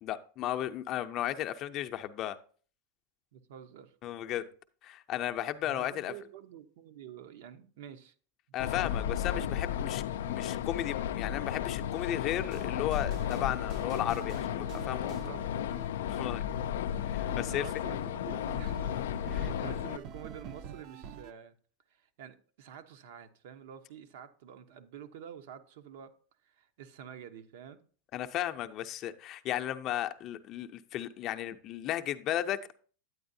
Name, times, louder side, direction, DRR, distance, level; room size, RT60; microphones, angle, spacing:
voice 1, 0.0-2.4 4.0-4.4 4.8-6.1 8.5-15.1 16.1-16.4 17.0-17.7 19.3-19.5 28.1-32.7, left 12 dB, 40° left, 0.5 m, -35 dB
voice 2, 3.3-3.9 5.6-8.1 14.8-15.7 17.5-19.0 19.2-21.5 21.9-26.1 26.4-27.8, right 8 dB, 70° right, 0.8 m, -48 dB
sound 1, 8.6-20.0, left 10 dB, 85° left, 0.3 m, -34 dB
sound 2, 12.3-21.3, right 8 dB, 45° right, 0.5 m, -47 dB
9.4 x 8.6 x 2.7 m
supercardioid pair, 140°, 0 cm